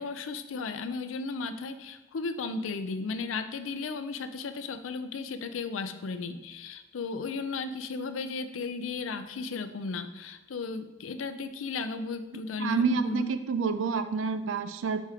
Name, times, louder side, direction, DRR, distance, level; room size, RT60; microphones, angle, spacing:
voice 1, 0.0-13.3, left 4 dB, 85° left, 10 dB, 0.5 m, -35 dB
voice 2, 12.6-15.1, right 5 dB, 75° right, 10 dB, 0.4 m, -28 dB
4.9 x 4.3 x 4.8 m, 1.1 s
head